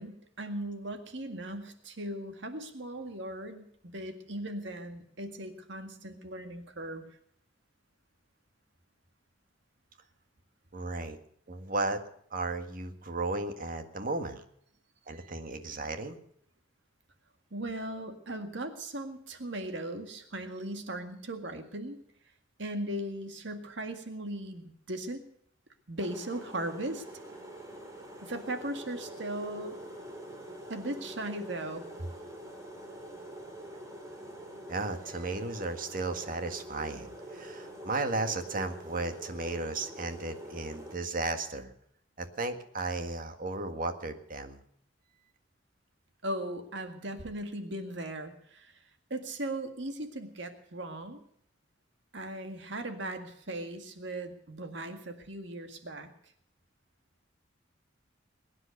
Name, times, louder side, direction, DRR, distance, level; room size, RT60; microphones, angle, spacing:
voice 1, 0.0-7.0 17.5-22.0 22.6-25.2 25.9-27.0 28.2-29.9 30.7-32.1 46.2-48.7 49.1-51.2 52.1-56.1, right 1 dB, 65° right, 7 dB, 1.9 m, -38 dB
voice 2, 10.7-11.2 11.5-12.0 12.3-14.4 15.1-16.2 34.7-41.7 42.2-44.6, right 2 dB, 45° right, 7 dB, 1.8 m, -34 dB
sound 1, 26.0-41.0, right 1 dB, 15° right, 3.7 m, -45 dB
21.5 x 9.8 x 6.6 m, 0.68 s
head